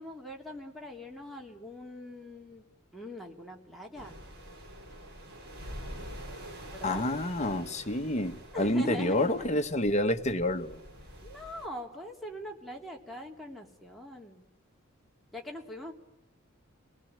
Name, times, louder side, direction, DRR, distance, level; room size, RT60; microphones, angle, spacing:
voice 1, 0.0-2.6 2.9-4.2 6.7-7.0 8.5-9.5 11.2-14.4 15.3-15.9, left 1 dB, ahead, 3.4 m, -42 dB
sound 1, 4.0-11.7, equal, 55° right, 7.1 m, -46 dB
voice 2, 6.8-10.8, left 1 dB, 35° left, 1.3 m, -28 dB
29.5 x 19.5 x 9.1 m
head